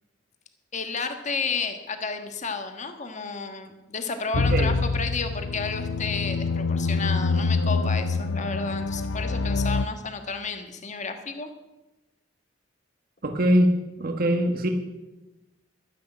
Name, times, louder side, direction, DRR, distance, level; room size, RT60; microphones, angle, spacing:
voice 1, 0.7-11.5, left 4 dB, 40° left, 7 dB, 1.5 m, -32 dB
sound 1, 4.3-9.8, left 3 dB, 85° left, 0.5 m, -25 dB
voice 2, 4.4-4.8 13.2-14.7, equal, 50° right, 5 dB, 1.4 m, -23 dB
12.5 x 10.5 x 8.0 m, 1.0 s
head